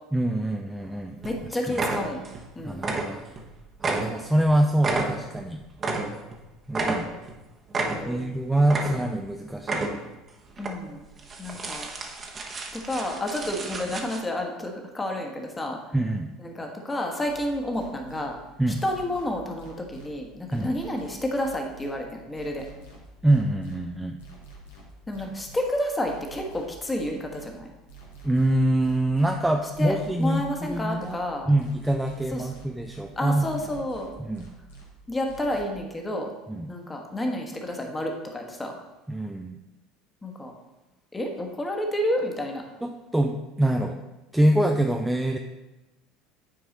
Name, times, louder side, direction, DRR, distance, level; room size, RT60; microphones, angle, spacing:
voice 1, 0.1-1.2 1.5-1.9 2.6-3.2 3.8-5.6 6.7-7.1 8.0-9.9 15.9-16.3 18.6-18.8 20.5-20.7 23.2-24.2 28.2-31.2 31.5-33.5 34.2-34.5 36.5-36.7 39.1-39.6 42.8-44.0 44.3-45.4, right 1 dB, 5° right, 3 dB, 0.5 m, -25 dB
sound 1, 0.8-0.9 1.2-1.4 1.7-2.5 2.7-3.5 3.8-6.4 6.7-7.4 7.7-8.3 8.6-9.3 9.6-10.2 10.6-10.7 11.2-14.2, right 3 dB, 30° right, 1.2 m, -31 dB
voice 2, 1.2-2.2 2.5-2.8 7.8-8.2 10.6-11.0 11.4-11.9 12.7-15.8 16.4-18.4 18.8-22.7 25.1-27.7 29.8-31.5 32.3-32.5 33.2-34.1 35.1-36.3 36.7-38.8 40.2-40.5 41.1-42.6, left 1 dB, 15° left, 2 dB, 1.4 m, -30 dB
sound 2, 17.3-18.2 18.6-20.1 20.5-21.9 22.3-23.8 24.2-25.6 26.0-27.5 27.9-29.3 29.7-31.1 31.6-33.0 33.4-34.8 35.3-35.6, right 3 dB, 70° left, 1.5 m, -47 dB
9.6 x 4.6 x 4.1 m, 1.0 s
figure-of-eight pair, 65°, 0 cm